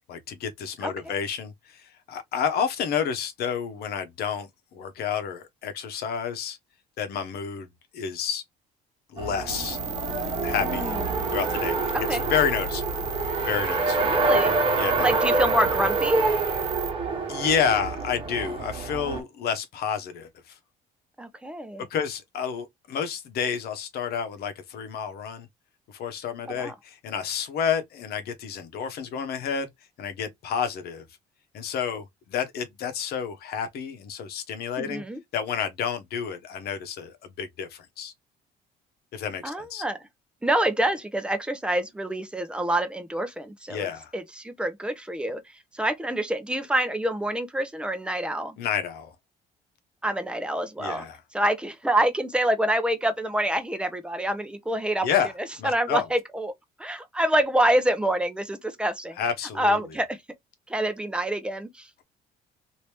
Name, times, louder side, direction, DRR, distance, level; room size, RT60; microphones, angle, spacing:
voice 1, 0.1-6.6 7.0-7.7 7.9-8.4 9.1-9.8 10.4-10.8 11.3-12.8 13.4-14.0 14.8-15.2 17.3-20.3 21.9-25.5 25.9-29.7 30.0-31.0 31.5-35.0 35.3-38.1 39.1-39.8 43.7-44.1 48.6-49.1 50.8-51.2 55.0-55.3 55.6-56.1 59.2-59.8, left 7 dB, 70° left, 0.9 m, -30 dB
Race car auto racing, 9.2-19.2, right 3 dB, 30° right, 1.2 m, -27 dB
sound 1, 9.5-13.4, left 5 dB, 35° left, 0.7 m, -41 dB
sound 2, 9.5-16.9, right 5 dB, 90° right, 0.7 m, -34 dB
voice 2, 10.6-11.0 11.9-12.2 14.0-14.6 15.0-16.2 21.2-21.9 26.5-26.7 34.8-35.2 39.4-40.0 40.4-43.9 44.1-45.4 45.7-48.6 50.0-51.1 51.3-55.1 55.6-56.5 56.8-59.2 59.6-60.2 60.7-61.9, right 1 dB, 5° right, 0.7 m, -26 dB
3.0 x 2.7 x 3.2 m
cardioid pair, 110°, 17 cm